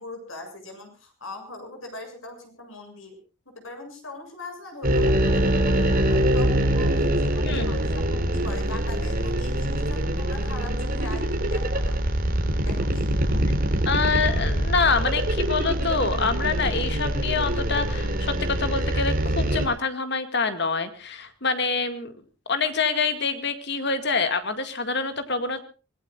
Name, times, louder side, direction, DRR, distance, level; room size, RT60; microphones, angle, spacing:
voice 1, 0.0-3.2 3.5-12.0 12.6-13.1, left 2 dB, 75° left, 4 dB, 7.3 m, -41 dB
sound 1, 4.8-19.7, right 1 dB, 45° right, 3.7 m, -24 dB
voice 2, 7.4-7.8 13.9-22.1 22.5-25.6, left 4 dB, 55° left, 9 dB, 2.1 m, -26 dB
25.5 x 18.5 x 2.5 m, 0.34 s
head